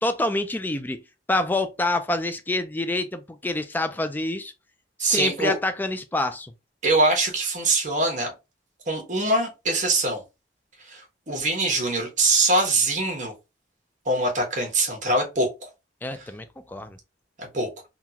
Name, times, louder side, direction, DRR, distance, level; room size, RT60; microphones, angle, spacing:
voice 1, 0.0-1.0 1.3-4.5 5.0-6.5 16.0-17.0, left 2 dB, 10° left, 0.3 m, -27 dB
voice 2, 5.0-5.5 6.8-8.3 8.9-10.2 10.9-11.0 11.3-13.3 14.0-15.7 16.1-16.2 17.4-17.7, right 2 dB, 45° right, 1.3 m, -23 dB
3.7 x 2.4 x 2.8 m
head